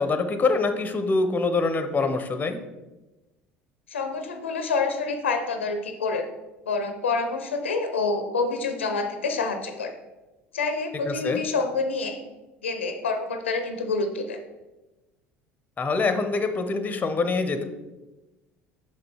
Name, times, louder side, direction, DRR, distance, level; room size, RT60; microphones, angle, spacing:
voice 1, 0.0-2.6 11.1-11.4 15.8-17.6, left 3 dB, 25° left, 9 dB, 0.8 m, -25 dB
voice 2, 3.9-6.2 6.7-9.9 10.5-12.2 12.6-14.4, left 4 dB, 90° left, 7 dB, 0.6 m, -27 dB
6.0 x 5.3 x 4.4 m, 1.1 s
hypercardioid pair, 70°, 6 cm